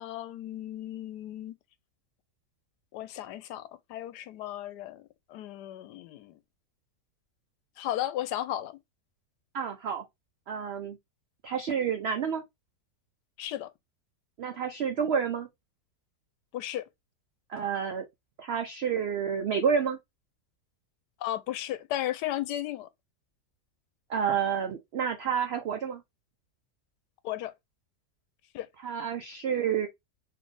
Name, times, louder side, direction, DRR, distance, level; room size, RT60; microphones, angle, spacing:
voice 1, 0.0-1.5 2.9-5.0 5.3-6.4 7.8-8.8 13.4-13.7 16.5-16.8 21.2-22.9 27.2-27.5 28.5-28.7, left 13 dB, 80° left, 1.2 m, -35 dB
voice 2, 9.5-10.0 10.5-11.0 11.4-12.4 14.4-15.5 17.5-18.0 18.4-20.0 24.1-26.0 28.8-29.9, right 7 dB, 85° right, 0.5 m, -29 dB
4.1 x 3.0 x 3.2 m
omnidirectional pair, 1.8 m